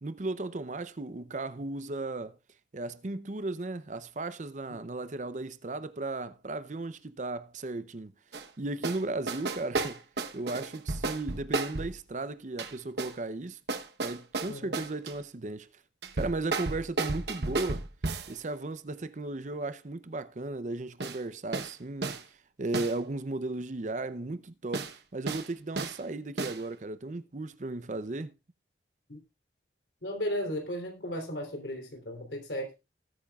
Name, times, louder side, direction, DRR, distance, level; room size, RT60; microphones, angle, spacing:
voice 1, 0.0-2.4 2.7-8.1 8.6-10.0 10.3-13.6 14.0-15.7 16.1-17.9 18.3-28.3, right 2 dB, 40° right, 0.6 m, -35 dB
sound 1, 8.3-8.5 8.8-9.0 9.3-11.9 12.6-13.2 13.7-15.1 16.0-18.3 21.0-21.2 21.5-21.7 22.0-22.2 22.7-22.9 24.7-24.9 25.3-25.5 25.8-26.0 26.4-26.6, right 3 dB, 70° right, 1.0 m, -33 dB
voice 2, 14.5-14.8 29.1-29.2 30.0-32.8, equal, 75° left, 3.3 m, -35 dB
19.0 x 8.8 x 2.4 m
head